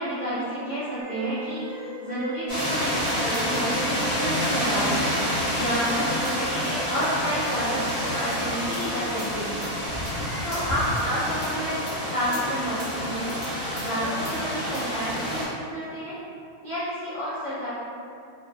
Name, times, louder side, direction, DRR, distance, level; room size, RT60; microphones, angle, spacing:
voice 1, 0.0-3.7 4.1-5.1 5.5-9.5 10.4-13.3 13.8-16.2 16.6-17.7, equal, 65° left, -12 dB, 0.4 m, -30 dB
sound 1, 1.0-11.2, right 2 dB, 65° right, 1.2 m, -40 dB
sound 2, 2.5-15.5, equal, 20° left, 0.8 m, -28 dB
3.1 x 2.1 x 2.4 m, 2.5 s
omnidirectional pair, 1.6 m